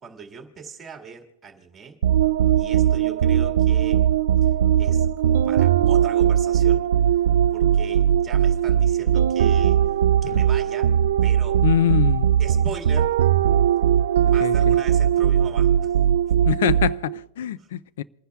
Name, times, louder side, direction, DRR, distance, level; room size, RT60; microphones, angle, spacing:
voice 1, 0.0-2.0 2.6-4.0 4.4-4.5 4.8-6.9 7.5-9.8 10.2-10.9 11.2-11.6 12.4-13.1 14.2-15.9 17.6-17.7, right 5 dB, 10° right, 1.9 m, -40 dB
sound 1, 2.0-17.2, right 10 dB, 80° right, 0.3 m, -19 dB
voice 2, 11.6-12.3 14.4-14.7 16.5-18.0, left 11 dB, 70° left, 0.4 m, -24 dB
29.0 x 10.0 x 2.4 m
supercardioid pair, 165°, 0 cm